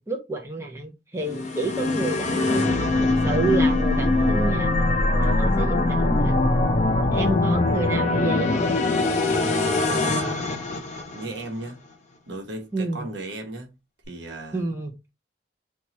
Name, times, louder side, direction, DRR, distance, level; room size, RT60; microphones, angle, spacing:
voice 1, 0.0-4.8 5.2-6.5 7.1-8.8 12.7-13.1 14.5-14.9, right 3 dB, 15° right, 0.5 m, -30 dB
sound 1, 1.2-11.5, left 2 dB, 40° left, 0.5 m, -22 dB
voice 2, 5.2-5.6 7.0-7.4 9.2-10.6 11.1-11.8 12.3-13.7 14.1-14.6, right 1 dB, 80° right, 0.9 m, -36 dB
2.9 x 2.3 x 4.0 m
head